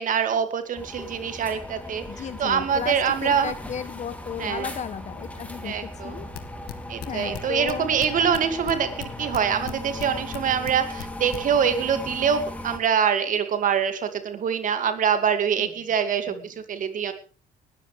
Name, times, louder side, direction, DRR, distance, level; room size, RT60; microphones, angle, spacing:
voice 1, 0.0-3.5 4.4-4.7 5.6-6.2 6.9-17.1, right 7 dB, 50° right, 9 dB, 2.4 m, -25 dB
sound 1, 0.7-12.8, left 1 dB, 10° left, 3.0 m, -37 dB
voice 2, 2.1-3.0 3.2-6.3 7.1-7.9 15.6-15.7 16.3-16.4, left 7 dB, 45° left, 12 dB, 1.6 m, -34 dB
sound 2, 6.3-8.1 8.3-10.1 10.3-11.4, left 13 dB, 70° left, 1.9 m, -36 dB
19.5 x 13.5 x 3.4 m, 0.38 s
cardioid pair, 110°, 17 cm